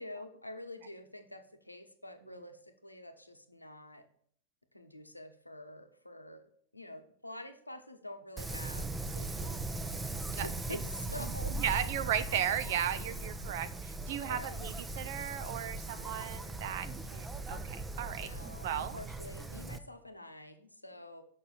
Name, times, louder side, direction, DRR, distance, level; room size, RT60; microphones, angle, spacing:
voice 1, 0.0-4.1 4.7-6.5 6.7-10.0 10.3-11.5 14.3-14.6 16.6-17.3 17.9-21.2, left 1 dB, 85° left, 8 dB, 0.9 m, -47 dB
Wind, 8.4-19.8, right 2 dB, 10° right, 0.7 m, -39 dB
voice 2, 11.6-18.3 18.6-19.0, right 10 dB, 55° right, 11 dB, 0.5 m, -35 dB
6.6 x 5.6 x 7.0 m, 0.62 s
figure-of-eight pair, 90°, 0 cm